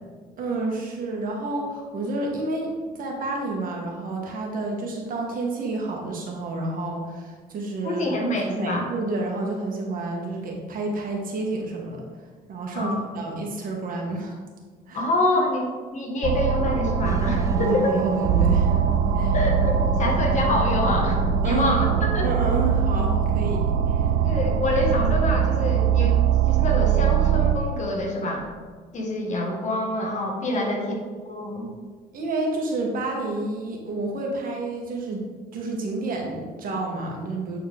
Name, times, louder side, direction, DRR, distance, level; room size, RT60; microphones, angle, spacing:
voice 1, 0.4-8.1 8.4-12.0 12.5-14.4 14.9-15.0 17.6-18.8 19.1-19.3 21.4-21.7 22.2-24.1 30.5-30.9 32.1-35.2 35.5-37.6, right 2 dB, 55° right, 0 dB, 1.6 m, -29 dB
voice 2, 7.8-8.9 12.7-13.0 14.9-18.0 19.3-22.3 24.2-26.2 26.5-28.5 28.9-30.9 31.2-31.7, left 1 dB, 45° left, 0 dB, 1.5 m, -26 dB
sound 1, 16.2-27.5, right 7 dB, 75° right, 0.5 m, -22 dB
sound 2, 17.0-22.7, right 3 dB, 20° right, 0.4 m, -33 dB
9.3 x 4.2 x 3.5 m, 1.5 s
cardioid pair, 110°, 17 cm